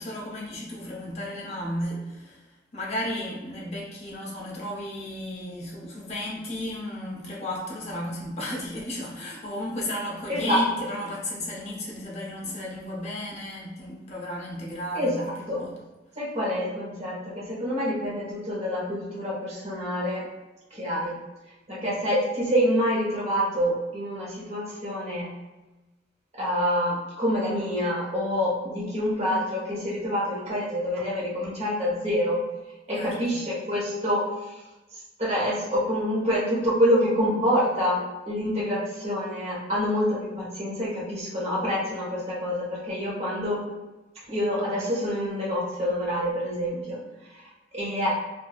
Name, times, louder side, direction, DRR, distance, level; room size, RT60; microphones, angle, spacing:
voice 1, 0.0-2.4 2.7-15.8 32.9-33.4, left 1 dB, 35° left, -4 dB, 0.7 m, -34 dB
voice 2, 10.3-10.6 14.9-15.1 15.5-15.6 16.2-20.3 20.7-21.2 21.7-25.3 26.4-32.4 32.9-34.2 35.2-43.6 44.3-47.0 47.7-48.1, equal, 35° right, -7 dB, 1.0 m, -26 dB
3.3 x 2.6 x 2.3 m, 1.1 s
head